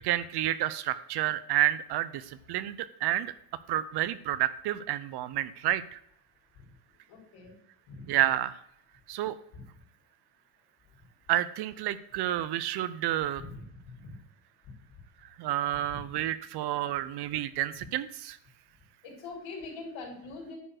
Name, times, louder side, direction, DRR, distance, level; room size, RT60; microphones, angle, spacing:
voice 1, 0.0-2.2 2.5-3.3 3.7-6.0 8.1-8.5 9.1-9.3 11.3-13.4 15.4-18.4, right 13 dB, 50° right, 15 dB, 0.6 m, -29 dB
voice 2, 7.1-7.5 7.9-8.1 9.5-9.6 13.4-13.7 14.0-14.1 15.9-16.0 19.0-20.6, left 3 dB, 65° left, -1 dB, 4.0 m, -42 dB
10.0 x 4.4 x 6.5 m, 0.73 s
cardioid pair, 125°, 50 cm